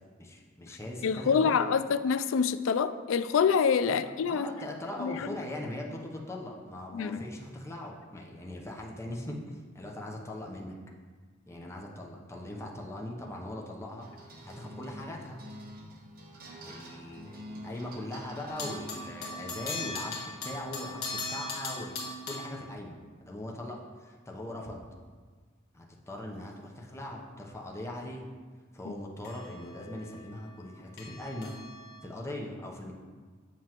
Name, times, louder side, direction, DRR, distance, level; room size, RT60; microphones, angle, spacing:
voice 1, 0.2-1.7 3.9-10.7 11.5-14.1 14.4-15.4 16.6-22.0 22.3-24.8 25.7-28.3 28.7-31.5 32.0-32.9, left 1 dB, 15° left, -1 dB, 0.7 m, -40 dB
voice 2, 1.0-4.5 5.0-5.3 6.9-7.2 28.9-29.0, left 6 dB, 80° left, 12 dB, 0.3 m, -26 dB
sound 1, 14.0-21.6, equal, 50° right, 1.0 m, -48 dB
sound 2, 18.5-22.6 29.2-32.0, left 3 dB, 55° left, 1.4 m, -39 dB
7.7 x 6.1 x 2.9 m, 1.5 s
head